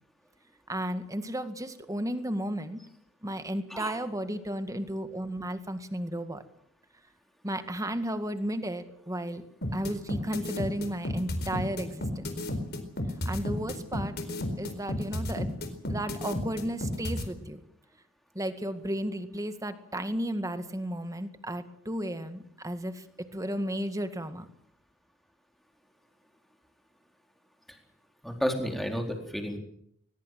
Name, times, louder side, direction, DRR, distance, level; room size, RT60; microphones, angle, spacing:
voice 1, 0.7-2.8 3.2-6.4 7.4-9.4 9.7-12.3 13.3-14.1 14.6-15.5 15.9-17.6 18.4-23.0 23.3-24.5, right 1 dB, 15° right, 9 dB, 2.0 m, -33 dB
voice 2, 3.7-4.0 27.7-27.8 28.2-29.6, equal, ahead, 3 dB, 4.1 m, -32 dB
sound 1, 9.6-17.2, left 1 dB, 50° left, 4.4 m, -32 dB
21.5 x 21.0 x 7.7 m, 0.69 s
head